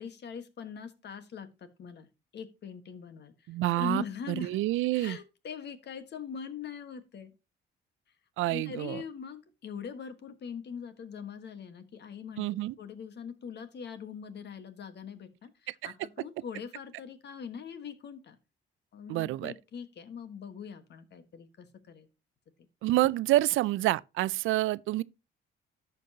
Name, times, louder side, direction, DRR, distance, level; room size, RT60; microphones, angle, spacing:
voice 1, 0.0-3.3 3.8-4.6 4.9-7.3 8.4-18.4 18.9-22.1, left 6 dB, 60° left, 1.4 m, -42 dB
voice 2, 3.5-4.0 4.3-5.2 8.4-9.0 12.4-12.7 15.7-15.9 19.1-19.5 22.8-25.0, right 16 dB, 85° right, 0.4 m, -28 dB
13.5 x 5.3 x 2.8 m
cardioid pair, 90°, 20 cm